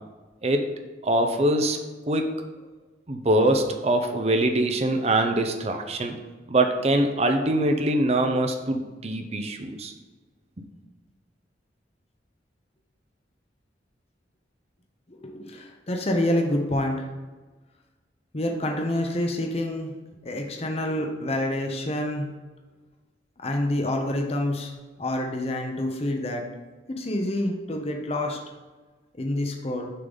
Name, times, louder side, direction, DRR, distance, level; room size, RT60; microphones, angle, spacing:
voice 1, 0.4-0.7 1.0-1.8 2.1-2.3 3.1-6.2 6.5-9.9 10.6-10.7, right 1 dB, 35° right, 5 dB, 0.6 m, -23 dB
voice 2, 15.1-17.0 18.3-19.9 20.2-22.3 23.4-24.7 25.0-26.4 27.0-28.4 29.2-29.9, left 1 dB, 35° left, 2 dB, 0.7 m, -27 dB
6.7 x 3.8 x 5.3 m, 1.3 s
head